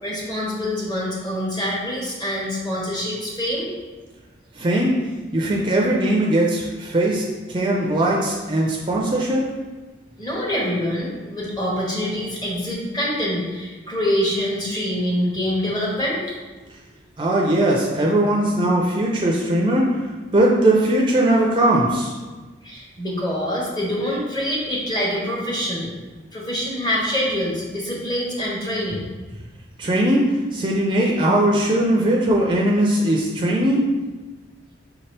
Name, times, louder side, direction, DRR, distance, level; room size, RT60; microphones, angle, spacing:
voice 1, 0.0-3.7 10.2-16.2 22.6-25.9 26.3-29.0, equal, 25° left, -5 dB, 1.1 m, -25 dB
voice 2, 4.6-4.9 5.3-9.5 17.2-19.9 20.3-22.1 29.8-33.9, right 1 dB, 25° right, -2 dB, 0.4 m, -19 dB
5.7 x 2.9 x 3.3 m, 1.3 s
head